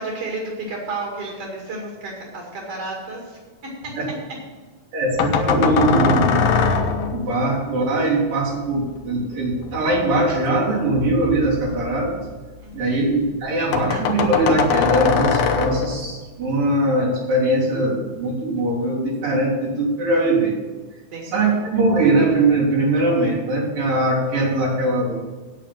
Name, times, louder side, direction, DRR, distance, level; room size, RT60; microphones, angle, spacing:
voice 1, 0.0-3.4 3.8-3.9 12.6-13.0 21.1-21.3, right 3 dB, 45° right, -2 dB, 3.0 m, -31 dB
voice 2, 4.9-6.4 7.1-12.2 12.7-20.6 21.3-25.1, right 2 dB, 75° right, -5 dB, 4.9 m, -21 dB
sound 1, 5.1-7.5 9.5-12.8 13.1-13.2 13.4-13.5 13.7-16.2, left 5 dB, 70° left, 1.6 m, -22 dB
9.0 x 8.2 x 7.4 m, 1.3 s
omnidirectional pair, 3.9 m